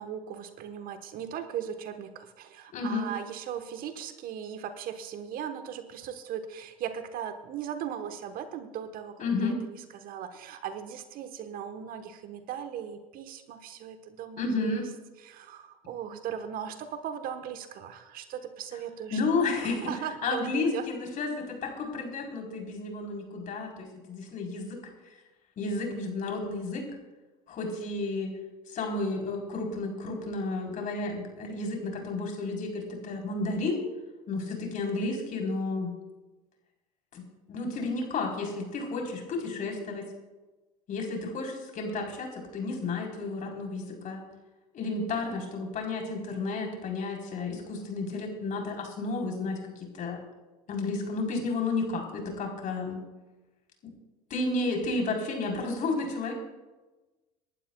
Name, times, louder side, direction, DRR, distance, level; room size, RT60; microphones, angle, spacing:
voice 1, 0.0-14.8 15.2-20.9, right 9 dB, 50° right, 9 dB, 1.2 m, -38 dB
voice 2, 2.7-3.1 9.2-9.6 14.4-14.8 19.1-19.9 20.2-24.8 25.6-26.9 27.5-28.4 28.7-33.8 34.3-35.9 37.1-37.2 37.5-40.1 40.9-44.2 44.7-50.2 50.7-53.0 54.3-56.3, left 3 dB, 45° left, 1 dB, 3.7 m, -32 dB
27.0 x 11.5 x 2.3 m, 1.2 s
hypercardioid pair, 75°, 19 cm